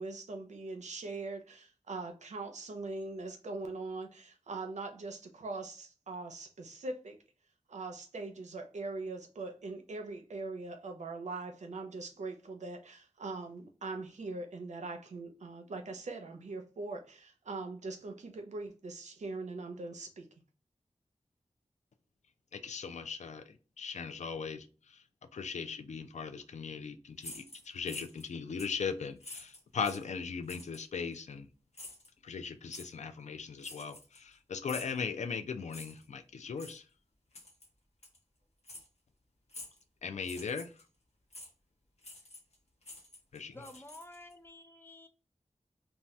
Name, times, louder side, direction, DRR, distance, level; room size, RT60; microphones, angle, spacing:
voice 1, 0.0-7.2 7.7-20.3, right 3 dB, 85° right, 0.5 m, -41 dB
voice 2, 22.5-25.0 25.3-31.5 32.2-36.8 40.0-40.7 43.3-43.6, left 5 dB, 85° left, 0.4 m, -39 dB
sound 1, 27.2-28.3 28.6-28.8 29.2-30.1 30.5-30.8 31.7-32.1 32.7-32.9 33.6-34.3 34.7-35.0 35.7-36.1 36.6-36.8 37.3-37.7 38.0-38.2 38.6-38.9 39.5-39.8 40.2-40.8 41.3-41.5 42.0-42.5 42.8-44.3, left 2 dB, 65° left, 0.9 m, -48 dB
voice 3, 43.5-45.1, left 1 dB, 20° left, 0.5 m, -51 dB
2.7 x 2.2 x 3.1 m
wide cardioid pair, 50°, 12 cm